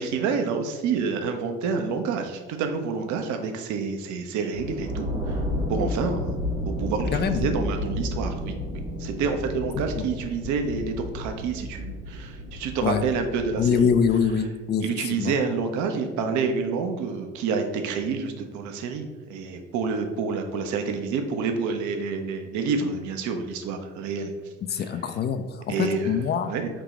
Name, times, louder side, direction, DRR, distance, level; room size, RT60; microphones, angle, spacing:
voice 1, 0.0-5.4 5.7-6.4 6.8-8.5 9.0-13.9 14.8-24.9 25.7-26.2 26.5-26.7, right 5 dB, 55° right, 6 dB, 0.7 m, -28 dB
sound 1, 4.5-14.3, left 1 dB, 80° right, 1.3 m, -32 dB
voice 2, 7.1-7.5 10.0-10.1 12.8-13.0 13.6-15.3 24.7-26.5, left 7 dB, 30° left, 8 dB, 0.4 m, -24 dB
4.8 x 2.8 x 3.6 m, 1.3 s
figure-of-eight pair, 50°, 36 cm